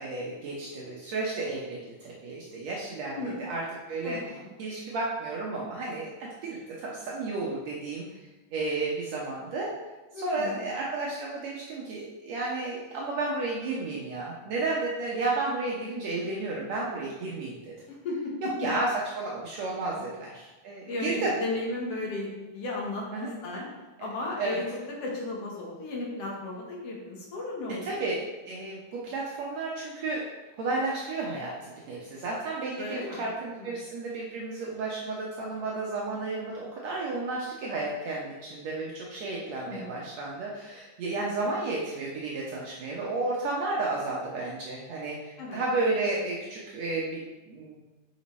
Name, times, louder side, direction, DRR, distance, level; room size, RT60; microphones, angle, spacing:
voice 1, 0.0-8.1 8.5-9.7 10.2-17.7 18.4-21.3 23.1-23.3 24.0-24.1 24.4-24.6 27.8-30.2 30.6-47.8, right 3 dB, 70° right, -4 dB, 1.8 m, -32 dB
voice 2, 4.0-4.5 10.1-10.6 17.9-18.3 20.0-20.1 20.9-23.7 24.0-24.6 25.0-28.0 32.8-33.3 33.6-33.7 39.7-40.0 45.4-45.6, left 2 dB, 60° left, -2 dB, 1.8 m, -35 dB
6.1 x 5.0 x 4.2 m, 1.1 s
omnidirectional pair, 3.7 m